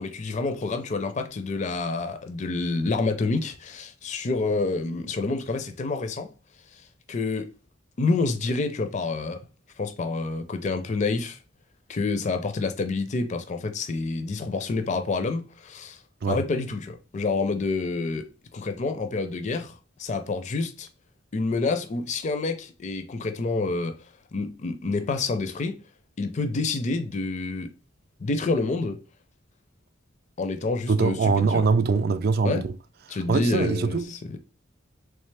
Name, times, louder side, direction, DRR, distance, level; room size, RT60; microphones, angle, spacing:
voice 1, 0.0-6.3 6.7-7.5 8.0-9.4 9.8-11.4 11.9-16.0 16.3-18.3 18.5-20.9 21.3-24.0 24.3-25.8 26.2-27.7 28.2-29.0 30.4-31.6 32.4-32.6 33.1-34.4, left 3 dB, 40° left, 0.4 m, -28 dB
voice 2, 30.9-32.7 33.1-34.0, right 4 dB, 50° right, 0.4 m, -23 dB
3.5 x 3.2 x 3.2 m
head